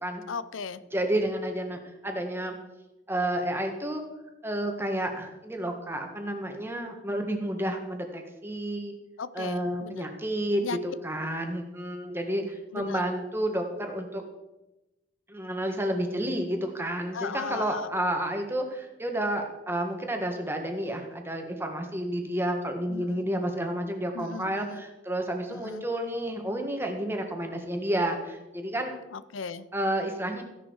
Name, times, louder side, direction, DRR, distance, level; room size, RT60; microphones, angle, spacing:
voice 1, 0.3-0.8 9.2-10.1 10.6-10.8 12.7-13.0 17.1-17.9 22.9-23.3 24.1-24.8 25.5-25.8 29.1-29.7, left 5 dB, 90° left, 15 dB, 0.6 m, -37 dB
voice 2, 0.9-2.6 3.1-4.0 4.4-8.9 9.3-14.2 15.3-28.9 29.7-30.4, right 1 dB, 10° right, 3 dB, 1.6 m, -30 dB
15.0 x 11.0 x 4.8 m, 1.0 s
head